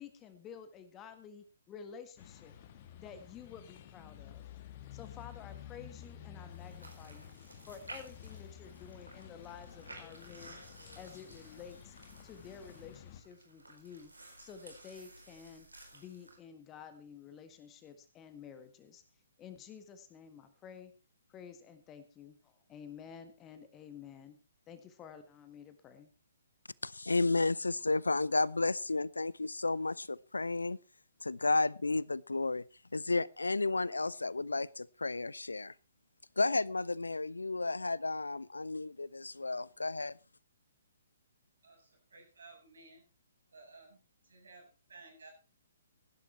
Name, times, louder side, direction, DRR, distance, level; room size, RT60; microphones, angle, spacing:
voice 1, 0.0-2.5 3.0-4.5 4.9-7.3 7.6-10.6 10.9-11.9 12.2-14.1 14.4-15.7 15.9-19.0 19.4-20.9 21.3-24.4 24.7-26.1, left 7 dB, 20° left, 10 dB, 1.6 m, -51 dB
sound 1, 2.2-13.2, left 10 dB, 35° left, 1.5 m, -52 dB
sound 2, 6.5-16.4, right 2 dB, 80° right, 4.5 m, -54 dB
voice 2, 26.8-30.8 31.2-32.6 32.9-35.7 36.4-40.1, left 3 dB, 75° left, 23 dB, 0.6 m, -32 dB
voice 3, 41.6-43.0 43.5-45.3, right 3 dB, 60° right, 2 dB, 7.5 m, -56 dB
16.0 x 11.5 x 4.3 m, 0.31 s
figure-of-eight pair, 130°, 0 cm